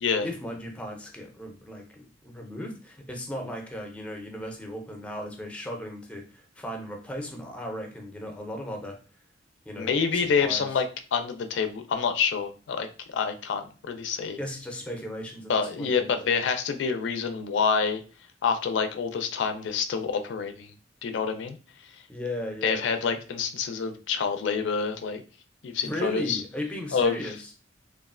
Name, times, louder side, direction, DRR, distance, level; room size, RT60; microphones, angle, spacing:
voice 1, 0.2-9.0 9.7-10.7 14.4-16.3 22.1-22.8 25.8-27.5, equal, 5° left, 2 dB, 0.4 m, -36 dB
voice 2, 9.8-10.9 11.1-14.4 15.5-18.0 18.4-20.7 21.0-21.6 22.6-25.2 25.6-26.4 26.9-27.3, left 6 dB, 75° left, 7 dB, 0.4 m, -27 dB
3.0 x 2.3 x 2.4 m, 0.37 s
head